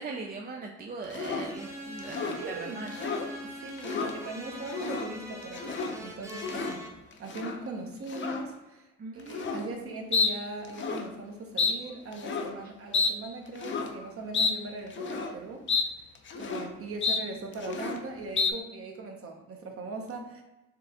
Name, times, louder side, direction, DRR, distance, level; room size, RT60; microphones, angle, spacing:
voice 1, 0.0-2.9 3.3-3.4 9.0-9.8, right 3 dB, 30° right, 1 dB, 0.4 m, -40 dB
sound 1, 1.1-1.5 2.0-2.4 2.9-3.3 3.7-4.1 4.6-5.1 5.4-5.9 6.3-6.8 7.3-7.6 8.1-8.4 9.3-9.7 10.1-10.3 10.6-11.1 11.6-11.7 12.1-12.5 12.9-13.1 13.6-13.9 14.3-14.5 14.9-15.3 15.7-15.9 16.2-16.7 17.0-17.2 17.5-18.0 18.4-18.5, left 4 dB, 40° left, 0.5 m, -30 dB
sound 2, 1.4-6.9, equal, 10° right, 0.8 m, -43 dB
voice 2, 2.4-2.9 3.4-6.8 7.2-15.7 16.4-20.4, right 3 dB, 50° right, 2 dB, 0.9 m, -40 dB
4.8 x 2.5 x 3.5 m, 1.0 s
cardioid pair, 90°, 30 cm